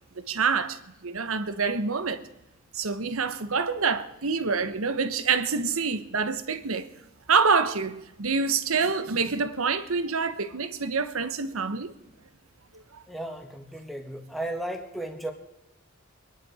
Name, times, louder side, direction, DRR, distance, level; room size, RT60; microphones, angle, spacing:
voice 1, 0.2-2.2 2.7-6.9 7.3-11.9 12.7-13.0, right 5 dB, 90° right, 1.1 m, -27 dB
voice 2, 13.1-15.3, right 1 dB, ahead, 1.5 m, -35 dB
23.5 x 11.0 x 4.9 m
head